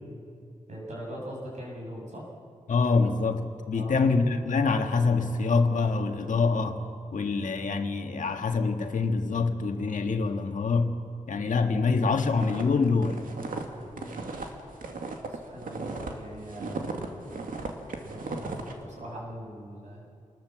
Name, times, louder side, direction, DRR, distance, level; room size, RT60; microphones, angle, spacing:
voice 1, 0.7-2.3 3.7-4.0 13.9-14.3 15.3-16.9 18.0-20.1, equal, 60° right, -2 dB, 7.1 m, -41 dB
voice 2, 2.7-6.8 7.1-11.0 11.3-13.3, left 4 dB, 65° left, 5 dB, 1.7 m, -25 dB
sound 1, 12.4-16.1 16.4-18.7, right 3 dB, 90° right, 2.3 m, -36 dB
27.0 x 20.0 x 7.5 m, 2.4 s
wide cardioid pair, 175°, 14 cm